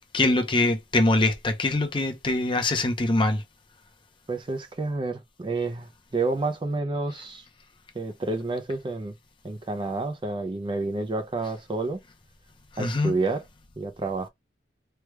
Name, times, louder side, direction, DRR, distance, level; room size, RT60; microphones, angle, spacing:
voice 1, 0.1-3.4 12.8-13.1, left 2 dB, 25° left, 0.6 m, -23 dB
voice 2, 4.3-7.4 7.9-9.1 9.4-12.0 12.8-13.4 13.8-14.3, right 3 dB, 25° right, 0.4 m, -29 dB
3.2 x 2.3 x 3.0 m
head